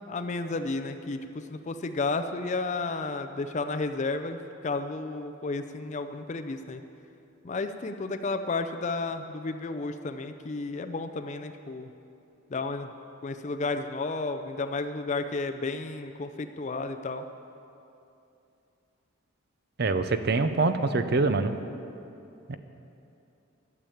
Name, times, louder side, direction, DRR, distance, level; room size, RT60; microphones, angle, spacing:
voice 1, 0.1-6.8 7.4-11.9 12.5-12.9 13.2-17.2, left 3 dB, 35° left, 8 dB, 0.4 m, -32 dB
voice 2, 19.8-21.6 22.5-22.6, right 3 dB, 50° right, 10 dB, 0.6 m, -25 dB
12.0 x 7.1 x 8.6 m, 2.7 s
head